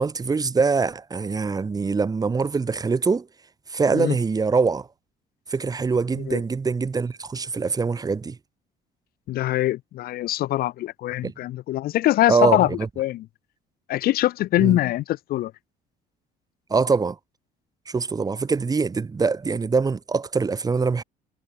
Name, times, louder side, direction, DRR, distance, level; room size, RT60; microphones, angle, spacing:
voice 1, 0.0-3.3 3.7-4.9 5.5-8.4 11.2-11.3 12.3-12.9 14.6-14.8 16.7-17.2 17.9-21.0, right 4 dB, 20° right, 0.9 m, -23 dB
voice 2, 9.3-12.7 13.0-13.2 13.9-15.5, left 15 dB, 65° left, 0.5 m, -23 dB
cardioid pair, 110°, 17 cm